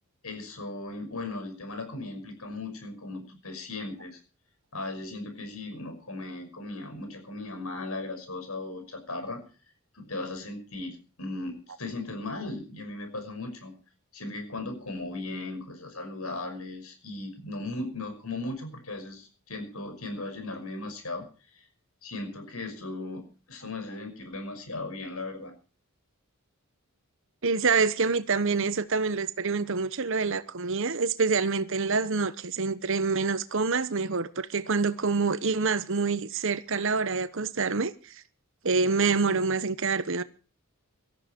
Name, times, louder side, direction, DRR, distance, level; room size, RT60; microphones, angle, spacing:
voice 1, 0.2-4.2 4.7-9.4 9.9-13.8 14.1-21.7 22.0-25.5, left 2 dB, 85° left, 5.8 m, -37 dB
voice 2, 27.4-38.1 38.6-40.2, right 4 dB, 60° right, 1.0 m, -26 dB
18.0 x 13.5 x 4.4 m
head